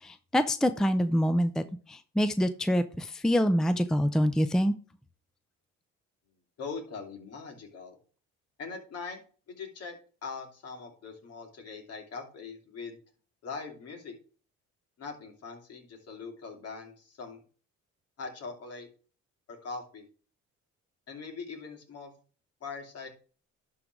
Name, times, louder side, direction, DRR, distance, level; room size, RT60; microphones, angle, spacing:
voice 1, 0.0-4.7, equal, ahead, 10 dB, 0.5 m, -26 dB
voice 2, 6.6-8.0 8.6-9.2 9.5-13.0 13.4-14.1 15.0-17.4 18.2-18.9 19.5-20.0 21.1-22.1 22.6-23.1, left 4 dB, 55° left, 3 dB, 2.8 m, -41 dB
11.5 x 3.9 x 4.6 m, 0.40 s
cardioid pair, 95°, 29 cm